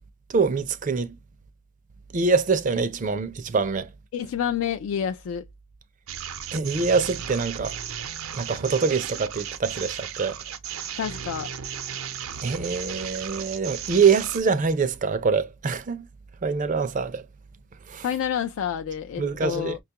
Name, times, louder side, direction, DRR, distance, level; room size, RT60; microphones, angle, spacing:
voice 1, 0.3-1.2 2.1-3.9 6.5-7.8 8.3-10.4 12.4-16.1 16.4-17.2 17.9-18.1 19.2-19.8, right 5 dB, 40° right, 0.4 m, -24 dB
voice 2, 4.1-5.5 11.0-11.5 18.0-19.8, left 8 dB, 75° left, 0.3 m, -28 dB
sound 1, 6.1-14.4, right 8 dB, 90° right, 0.6 m, -35 dB
5.6 x 2.3 x 2.8 m
head